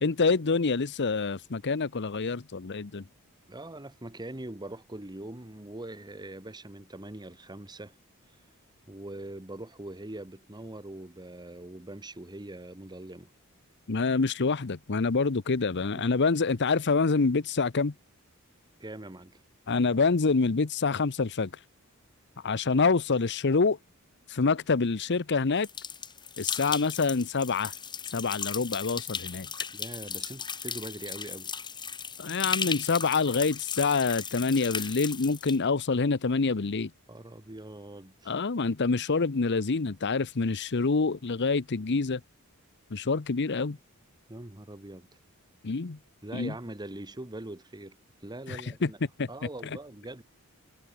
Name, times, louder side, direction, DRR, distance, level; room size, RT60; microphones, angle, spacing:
voice 1, 0.0-3.0 13.9-17.9 19.7-21.5 22.4-23.8 24.3-25.7 26.4-27.7 28.1-29.5 32.2-36.9 38.3-42.2 42.9-43.8 45.6-46.0 46.3-46.5 48.5-48.9 49.2-49.3, left 4 dB, 55° left, 0.8 m, -26 dB
voice 2, 3.5-7.9 8.9-13.3 16.0-16.1 18.8-19.4 29.7-31.6 37.1-38.4 44.3-45.1 46.2-49.0 49.3-50.2, right 1 dB, 20° right, 1.4 m, -42 dB
sound 1, 25.6-35.6, left 6 dB, 20° left, 1.5 m, -36 dB
head